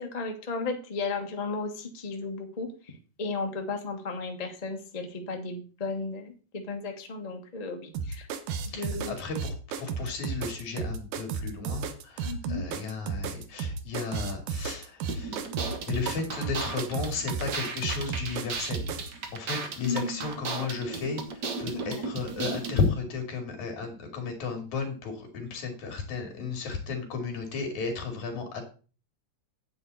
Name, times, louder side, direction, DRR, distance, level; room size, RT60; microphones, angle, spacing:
voice 1, 0.0-2.7 3.2-8.3 8.7-9.1 12.2-12.7 19.8-20.3 21.7-22.0, left 3 dB, 25° left, 3 dB, 0.8 m, -34 dB
sound 1, 7.9-19.1, right 5 dB, 85° right, 2.4 m, -33 dB
voice 2, 8.7-15.4 15.8-19.0 19.3-28.6, left 4 dB, 75° left, 4 dB, 3.7 m, -34 dB
sound 2, 15.1-22.9, right 4 dB, 50° right, 1.4 m, -36 dB
9.5 x 8.5 x 4.1 m, 0.37 s
omnidirectional pair, 3.4 m